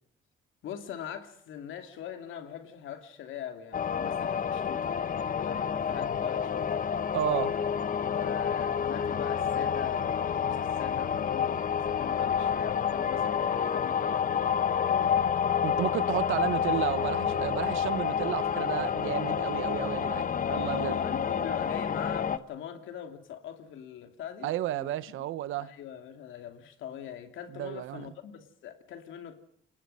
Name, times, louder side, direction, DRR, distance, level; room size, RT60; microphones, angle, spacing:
voice 1, 0.6-6.7 8.0-15.3 20.5-24.9 25.6-29.4, left 9 dB, 80° left, 2.7 m, -41 dB
sound 1, 3.7-22.4, left 7 dB, 45° left, 1.1 m, -29 dB
voice 2, 7.1-7.5 15.6-21.0 24.4-25.7 27.5-28.1, right 13 dB, 85° right, 1.0 m, -32 dB
29.5 x 19.5 x 5.6 m
cardioid pair, 90°, 20 cm